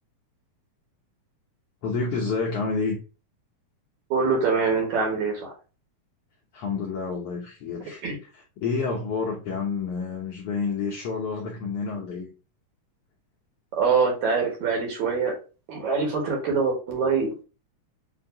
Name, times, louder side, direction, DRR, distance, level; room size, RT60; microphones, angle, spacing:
voice 1, 1.8-3.0 6.5-8.0 8.3-12.3, left 4 dB, 75° left, 1.4 m, -29 dB
voice 2, 4.1-5.5 8.0-8.2 13.8-15.3 15.7-17.3, right 5 dB, 65° right, 2.6 m, -24 dB
6.3 x 2.7 x 2.7 m
omnidirectional pair, 3.7 m